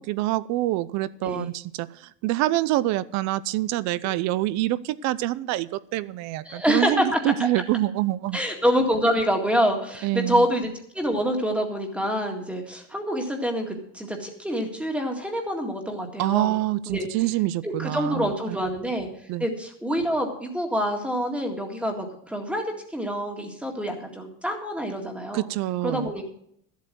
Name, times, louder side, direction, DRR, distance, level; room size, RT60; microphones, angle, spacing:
voice 1, 0.0-8.4 10.0-10.5 16.2-18.6 19.3-19.5 25.3-26.1, right 16 dB, 50° right, 18 dB, 0.6 m, -26 dB
voice 2, 6.5-7.2 8.3-10.7 10.9-16.5 16.9-17.1 17.6-19.1 19.4-22.6 22.9-25.4 25.8-26.3, equal, 5° right, 3 dB, 2.0 m, -26 dB
13.0 x 8.2 x 6.1 m, 0.68 s
cardioid pair, 155°, 35 cm